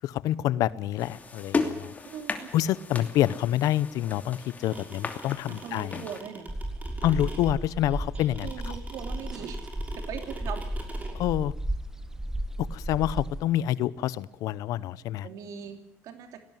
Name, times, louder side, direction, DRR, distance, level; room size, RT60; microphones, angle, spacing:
voice 1, 0.0-1.9 2.5-6.0 7.0-8.5 11.1-11.5 12.6-15.3, left 13 dB, 75° left, 19 dB, 0.9 m, -27 dB
sound 1, 1.0-6.2, left 4 dB, 25° left, 2.8 m, -35 dB
voice 2, 2.0-2.5 5.5-6.5 8.4-10.6 15.2-16.4, right 8 dB, 70° right, 7 dB, 2.9 m, -40 dB
sound 2, 4.4-11.1, right 3 dB, 25° right, 6.2 m, -43 dB
sound 3, 6.5-13.4, right 1 dB, 10° right, 1.4 m, -34 dB
18.5 x 18.0 x 9.3 m, 0.69 s
cardioid pair, 100°, 6 cm